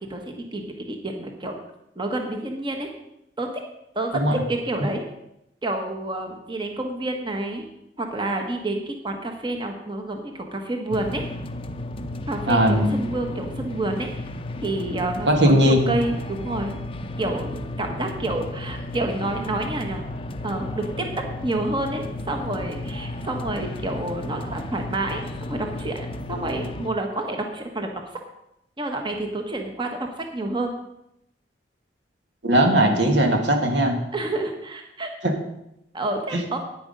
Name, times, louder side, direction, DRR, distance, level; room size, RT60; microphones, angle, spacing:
voice 1, 0.1-1.6 1.9-2.9 3.4-3.5 3.9-5.0 5.6-7.6 8.0-11.2 12.3-14.2 14.6-16.8 17.2-20.0 20.4-25.2 25.5-27.9 28.8-29.9 30.2-30.7 34.1-35.1 35.9-36.6, right 2 dB, 25° right, 3 dB, 1.2 m, -29 dB
sound 1, 10.9-26.9, left 1 dB, 30° left, 0.6 m, -33 dB
voice 2, 12.5-12.9 15.3-15.9 32.4-34.0 35.2-35.3 36.3-36.4, right 1 dB, 75° right, 3 dB, 1.7 m, -18 dB
9.5 x 9.3 x 5.3 m, 0.82 s
head